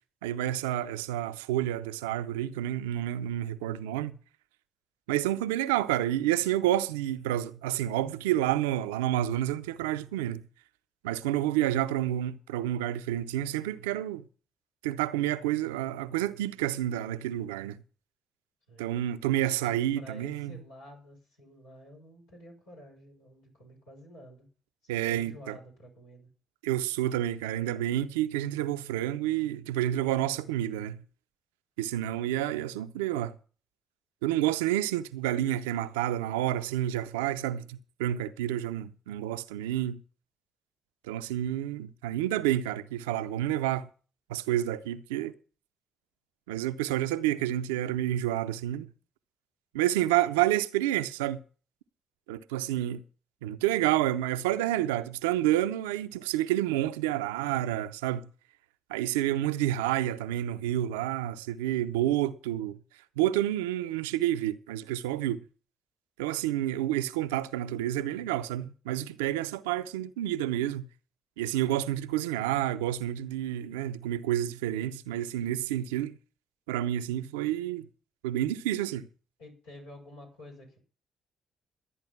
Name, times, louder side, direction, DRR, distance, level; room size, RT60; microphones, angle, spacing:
voice 1, 0.2-4.2 5.1-10.4 11.0-14.2 14.8-17.8 18.8-20.6 24.9-25.6 26.6-31.0 31.8-33.3 34.2-40.0 41.1-43.9 44.3-45.3 46.5-48.9 49.7-51.4 52.3-53.0 53.4-58.2 58.9-62.8 63.2-65.4 66.2-70.9 71.4-76.1 76.7-77.9 78.2-79.1, right 13 dB, 80° right, 0.5 m, -29 dB
voice 2, 19.3-24.5 24.9-26.3 47.3-47.5 52.7-52.9 79.4-80.8, left 1 dB, 80° left, 6.2 m, -50 dB
12.5 x 9.0 x 5.8 m
hypercardioid pair, 45°, 0 cm